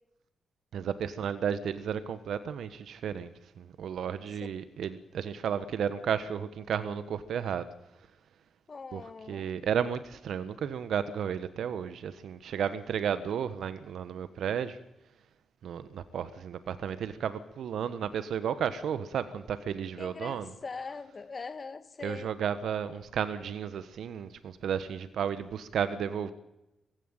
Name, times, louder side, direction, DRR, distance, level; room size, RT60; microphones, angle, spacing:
voice 1, 0.7-3.3 3.6-7.7 8.9-9.0 9.3-14.8 15.6-20.5 22.0-26.3, right 8 dB, 75° right, 1.3 m, -33 dB
voice 2, 8.7-9.5 20.0-22.3, left 4 dB, 45° left, 2.2 m, -42 dB
22.0 x 16.0 x 9.1 m
supercardioid pair, 45°, 0 cm